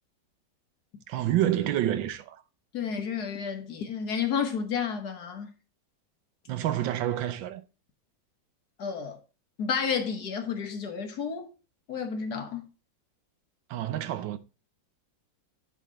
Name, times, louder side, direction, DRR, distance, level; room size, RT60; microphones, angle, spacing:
voice 1, 1.1-2.4 6.5-7.6 13.7-14.4, right 12 dB, 80° right, 1.5 m, -28 dB
voice 2, 2.7-5.5 8.8-9.2 9.6-11.5 11.9-12.7, left 6 dB, 60° left, 1.7 m, -31 dB
9.9 x 3.5 x 4.1 m
omnidirectional pair, 2.0 m